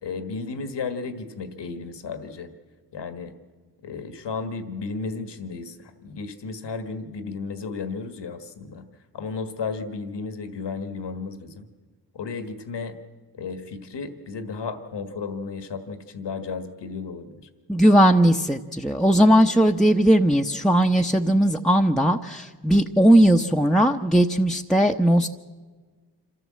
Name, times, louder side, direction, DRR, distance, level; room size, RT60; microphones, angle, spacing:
voice 1, 0.0-2.5 2.9-3.3 3.8-8.8 9.1-11.7 12.1-12.9 13.3-17.4 19.3-19.4, left 4 dB, 75° left, 10 dB, 1.6 m, -33 dB
voice 2, 17.7-25.3, right 1 dB, ahead, 1 dB, 0.9 m, -18 dB
26.0 x 14.0 x 7.6 m, 1.4 s
cardioid pair, 50°, 42 cm